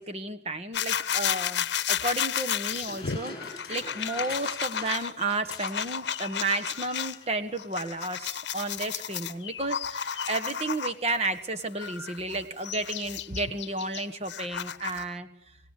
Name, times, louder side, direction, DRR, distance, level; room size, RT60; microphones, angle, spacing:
voice 1, 0.0-15.3, right 2 dB, 35° right, 10 dB, 1.4 m, -32 dB
sound 1, 0.7-7.2 7.6-11.2 11.8-15.1, left 8 dB, 75° left, 0.8 m, -32 dB
sound 2, 1.9-6.2 6.4-6.6 6.9-7.3 8.0-8.1, left 4 dB, 20° left, 4.8 m, -44 dB
26.5 x 18.5 x 8.4 m, 0.76 s
head